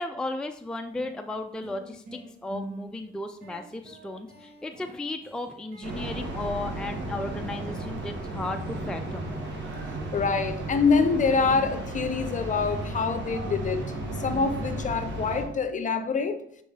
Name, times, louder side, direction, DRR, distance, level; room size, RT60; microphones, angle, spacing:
voice 1, 0.0-9.3, left 2 dB, 5° left, 0.4 m, -35 dB
sound 1, 0.5-0.6 1.0-8.2 9.8-15.6, right 1 dB, 50° right, 2.1 m, -46 dB
sound 2, 5.8-15.4, right 1 dB, 65° right, 1.5 m, -34 dB
voice 2, 10.1-13.9 14.2-16.4, left 5 dB, 40° left, 0.7 m, -25 dB
7.6 x 3.7 x 3.3 m
cardioid pair, 90°, 20 cm